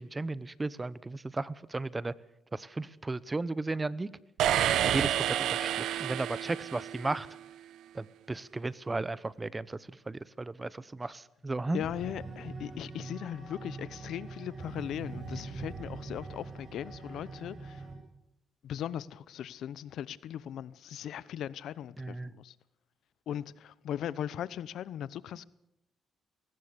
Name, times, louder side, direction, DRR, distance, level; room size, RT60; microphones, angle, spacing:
voice 1, 0.0-2.1 2.5-4.1 4.8-7.3 7.9-9.8 10.1-11.8 22.0-22.3, right 3 dB, 20° right, 0.9 m, -35 dB
sound 1, 4.4-7.2, right 11 dB, 80° right, 1.0 m, -29 dB
voice 2, 11.7-17.8 18.6-22.5 23.3-25.4, left 10 dB, 75° left, 0.8 m, -38 dB
sound 2, 11.8-18.0, right 3 dB, 40° right, 7.5 m, -43 dB
21.5 x 19.0 x 6.9 m
cardioid pair, 90°, 0 cm